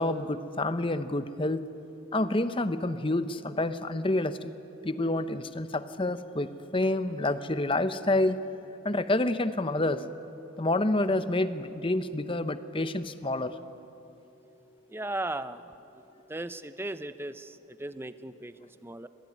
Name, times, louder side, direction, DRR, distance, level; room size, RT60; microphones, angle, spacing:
voice 1, 0.0-1.6 2.1-4.5 4.8-8.4 8.8-10.0 10.6-13.5, left 2 dB, 25° left, 12 dB, 0.8 m, -28 dB
voice 2, 14.9-15.8 16.3-19.1, right 2 dB, 10° right, 12 dB, 0.6 m, -37 dB
25.0 x 18.5 x 9.5 m, 3.0 s
head